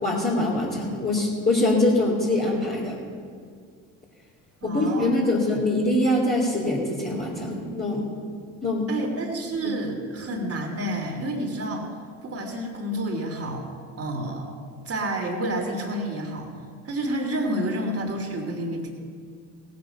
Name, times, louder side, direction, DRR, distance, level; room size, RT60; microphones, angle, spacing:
voice 1, 0.0-3.0 4.6-8.1 8.6-8.9 9.6-9.7, left 1 dB, 25° left, -6 dB, 3.1 m, -23 dB
voice 2, 4.6-5.4 8.9-11.9 12.2-13.6 14.0-14.5 14.8-16.5 16.8-18.9, right 1 dB, 35° right, 1 dB, 3.0 m, -29 dB
17.5 x 8.3 x 5.8 m, 2.1 s
hypercardioid pair, 60°, 40 cm